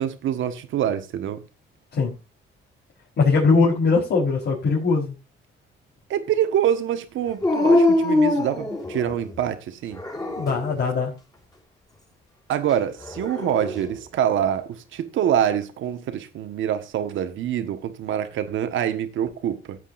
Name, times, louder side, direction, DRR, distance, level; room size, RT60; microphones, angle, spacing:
voice 1, 0.0-1.4 6.1-10.0 12.5-19.8, right 10 dB, 80° right, 1.5 m, -25 dB
voice 2, 3.2-5.1 10.4-11.1, left 4 dB, 60° left, 4.1 m, -20 dB
Dog, 7.4-9.3 10.0-10.8 13.0-13.9, left 2 dB, 20° left, 3.7 m, -22 dB
15.5 x 8.4 x 2.6 m
cardioid pair, 90°, 20 cm